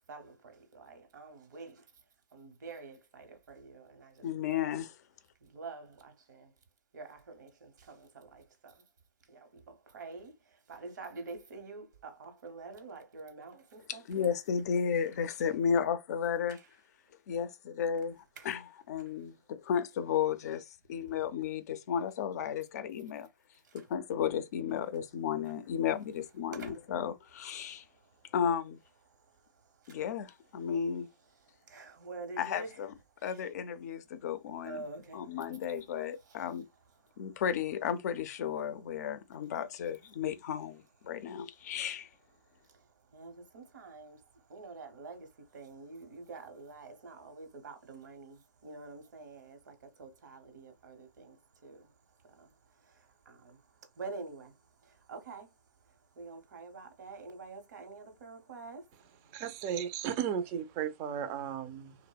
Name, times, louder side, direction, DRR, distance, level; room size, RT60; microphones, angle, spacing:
voice 1, 0.7-1.7 2.3-4.2 5.5-6.5 6.9-8.7 9.3-9.4 9.7-10.3 10.7-14.3 31.7-32.7 34.7-35.2 43.1-44.2 44.5-45.3 45.5-48.4 48.6-51.3 51.6-51.8 53.3-53.5 54.0-54.5 55.1-55.5 56.2-58.8, right 3 dB, 75° right, 0.9 m, -46 dB
voice 2, 4.2-5.0 13.9-16.6 17.3-23.3 23.7-27.8 28.3-28.8 29.9-31.1 32.4-32.9 33.2-34.9 35.1-36.7 37.2-42.1, left 8 dB, 60° left, 0.4 m, -33 dB
voice 3, 59.3-62.0, right 8 dB, 35° right, 0.4 m, -35 dB
2.7 x 2.0 x 2.3 m
hypercardioid pair, 140°, 10 cm